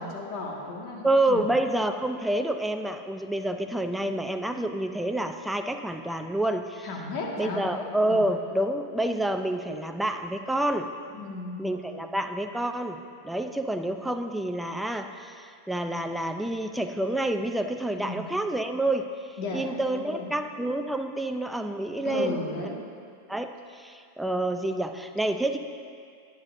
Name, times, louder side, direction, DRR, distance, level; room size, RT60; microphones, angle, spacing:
voice 1, 0.0-1.5 6.8-7.6 8.1-8.3 11.1-11.6 18.0-18.2 19.4-19.6 19.9-20.3 22.0-22.8, left 3 dB, 55° left, -1 dB, 1.8 m, -34 dB
voice 2, 1.0-6.9 7.4-10.9 11.6-19.1 19.5-22.7 23.3-25.6, right 1 dB, 5° right, 6 dB, 0.5 m, -28 dB
11.5 x 9.6 x 2.6 m, 2.3 s
hypercardioid pair, 105°, 0 cm